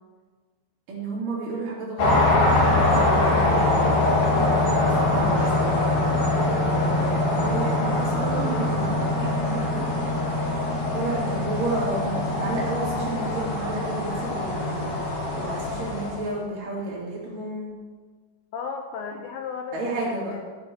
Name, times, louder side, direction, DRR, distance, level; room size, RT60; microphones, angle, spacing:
voice 1, 0.9-2.2 2.5-5.8 6.7-9.9 10.9-14.9 15.4-17.7 19.7-20.4, right 2 dB, 55° right, -5 dB, 4.2 m, -32 dB
sound 1, 2.0-16.3, left 2 dB, 55° left, 2.8 m, -23 dB
sound 2, 3.0-9.1, right 8 dB, 85° right, 2.9 m, -38 dB
voice 2, 18.5-20.5, left 6 dB, 75° left, 4 dB, 2.4 m, -35 dB
14.5 x 7.0 x 6.1 m, 1.5 s
omnidirectional pair, 5.0 m